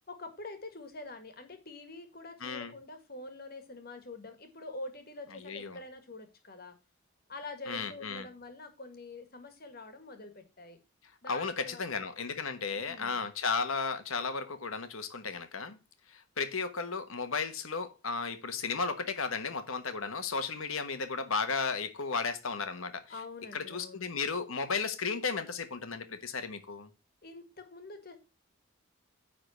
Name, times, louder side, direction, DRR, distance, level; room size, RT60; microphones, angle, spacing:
voice 1, 0.1-6.8 7.3-10.8 11.2-12.0 12.7-13.2 23.1-24.1 27.2-28.2, left 2 dB, 45° left, 1.7 m, -46 dB
voice 2, 2.4-2.7 5.3-5.8 7.7-8.3 11.3-15.8 16.1-23.0 23.5-26.9, left 4 dB, 75° left, 1.3 m, -34 dB
9.8 x 3.9 x 6.6 m
head